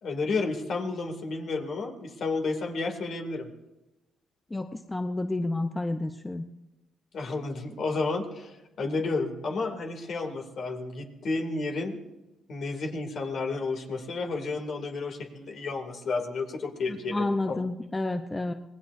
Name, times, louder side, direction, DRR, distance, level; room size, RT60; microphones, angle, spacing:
voice 1, 0.0-3.5 7.1-12.0 12.5-17.6, left 3 dB, 60° left, 3 dB, 2.7 m, -31 dB
voice 2, 4.5-6.4 16.9-18.5, left 2 dB, 20° left, 6 dB, 0.8 m, -30 dB
26.0 x 19.0 x 2.7 m, 1.0 s
cardioid pair, 90°, 0 cm